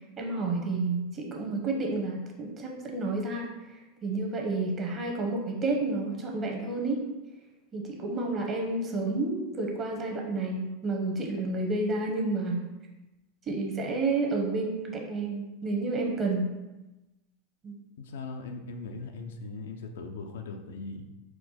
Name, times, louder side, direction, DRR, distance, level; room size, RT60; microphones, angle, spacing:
voice 1, 0.2-3.5 4.0-7.0 7.7-12.6 13.5-16.5 17.6-17.7, right 3 dB, 30° right, 1 dB, 0.9 m, -30 dB
voice 2, 18.0-21.1, left 3 dB, 85° left, 5 dB, 0.4 m, -39 dB
4.4 x 2.2 x 4.2 m, 1.1 s
hypercardioid pair, 110°, 0 cm